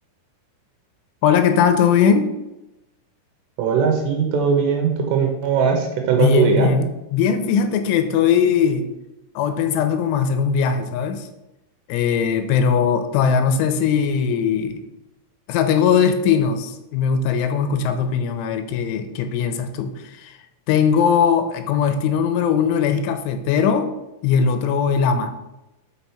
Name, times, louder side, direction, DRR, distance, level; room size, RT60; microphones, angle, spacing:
voice 1, 1.2-2.3 6.2-8.9 9.4-11.3 11.9-14.9 15.5-20.4 20.7-23.9 24.2-25.3, left 7 dB, 85° left, 8 dB, 3.0 m, -19 dB
voice 2, 3.6-6.7, right 6 dB, 75° right, 2 dB, 2.8 m, -19 dB
6.1 x 6.0 x 5.6 m, 0.94 s
omnidirectional pair, 5.6 m